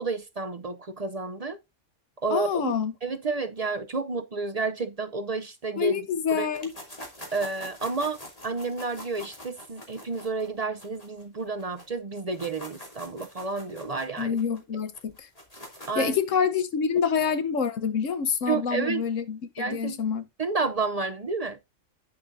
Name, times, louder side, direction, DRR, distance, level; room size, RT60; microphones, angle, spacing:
voice 1, 0.0-1.6 2.2-2.7 3.0-6.0 6.3-6.5 7.3-8.2 8.4-14.4 15.9-16.2 18.5-19.0 19.6-20.0 20.4-21.6, right 4 dB, 40° right, 0.6 m, -30 dB
voice 2, 2.3-2.9 5.8-6.7 14.2-14.9 15.2-15.3 16.0-20.2, left 6 dB, 80° left, 1.3 m, -26 dB
sound 1, 6.5-11.9 12.2-16.2, left 1 dB, 30° left, 2.8 m, -45 dB
9.6 x 8.2 x 2.6 m
omnidirectional pair, 1.3 m